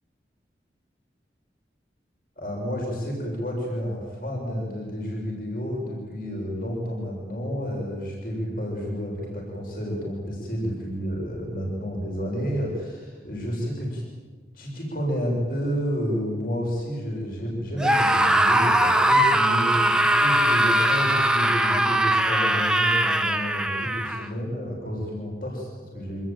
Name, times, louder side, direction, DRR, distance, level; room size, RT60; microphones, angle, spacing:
voice 1, 2.4-14.0 14.5-26.2, equal, 50° left, -1 dB, 6.8 m, -30 dB
Screaming, 17.8-24.3, right 1 dB, 5° right, 1.2 m, -21 dB
25.5 x 20.5 x 9.2 m, 1.5 s
head